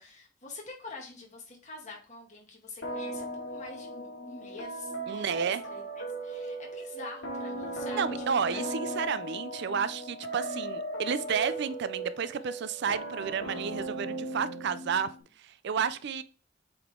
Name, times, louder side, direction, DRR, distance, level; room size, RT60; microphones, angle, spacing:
voice 1, 0.0-8.0 8.3-8.6, left 3 dB, 35° left, -1 dB, 2.1 m, -46 dB
sound 1, 2.8-15.2, right 1 dB, 60° left, 2.6 m, -37 dB
voice 2, 5.1-5.6 7.9-15.1 15.4-16.2, right 6 dB, 55° right, 14 dB, 0.4 m, -31 dB
7.8 x 3.8 x 3.7 m, 0.38 s
head